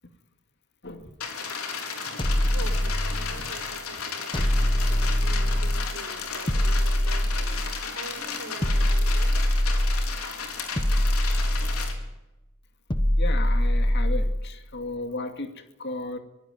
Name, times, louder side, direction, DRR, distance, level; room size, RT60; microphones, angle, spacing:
sound 1, 1.2-11.9, left 5 dB, 85° left, 4.2 m, -34 dB
sound 2, 2.2-3.5 4.3-6.0 6.5-7.9 8.6-10.2 10.8-12.2 12.9-14.5, left 1 dB, 25° left, 1.4 m, -23 dB
voice 1, 2.5-9.4, right 2 dB, 75° right, 5 dB, 5.7 m, -44 dB
voice 2, 13.1-16.2, left 2 dB, 55° left, 7 dB, 2.4 m, -35 dB
24.5 x 16.5 x 9.3 m, 0.98 s
head